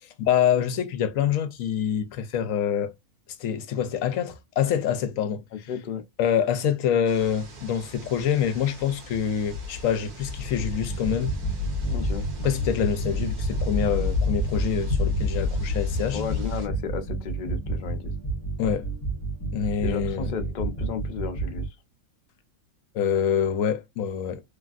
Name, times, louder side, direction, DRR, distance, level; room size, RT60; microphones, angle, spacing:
voice 1, 0.2-2.9 3.4-5.4 6.2-11.3 12.4-16.2 18.6-18.9 19.5-20.3 22.9-24.4, left 8 dB, 70° left, 0.9 m, -26 dB
voice 2, 5.7-6.0 11.8-12.3 16.1-18.1 19.8-21.8, left 7 dB, 85° left, 0.4 m, -33 dB
sound 1, 7.1-16.7, left 4 dB, 75° right, 1.5 m, -31 dB
sound 2, 10.9-21.7, right 3 dB, 20° left, 0.6 m, -31 dB
3.2 x 2.4 x 2.4 m
omnidirectional pair, 1.6 m